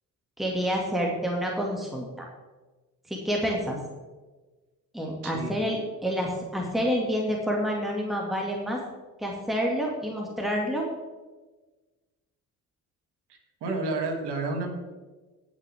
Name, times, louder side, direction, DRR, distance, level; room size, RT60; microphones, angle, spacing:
voice 1, 0.4-2.3 3.1-3.8 4.9-8.8 9.2-10.9, equal, ahead, -1 dB, 2.2 m, -28 dB
voice 2, 13.3-14.7, right 3 dB, 65° right, 2 dB, 2.6 m, -31 dB
19.0 x 6.3 x 3.6 m, 1.2 s
hypercardioid pair, 55°, 43 cm